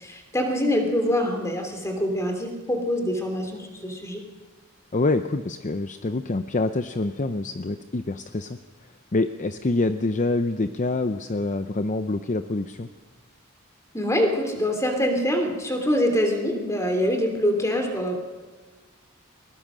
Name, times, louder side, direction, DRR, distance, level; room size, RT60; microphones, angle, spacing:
voice 1, 0.0-4.2 13.9-18.2, equal, 15° left, 4 dB, 2.9 m, -24 dB
voice 2, 4.9-8.6 9.1-12.9, left 2 dB, 35° left, 9 dB, 0.6 m, -26 dB
20.5 x 20.5 x 6.3 m, 1.4 s
head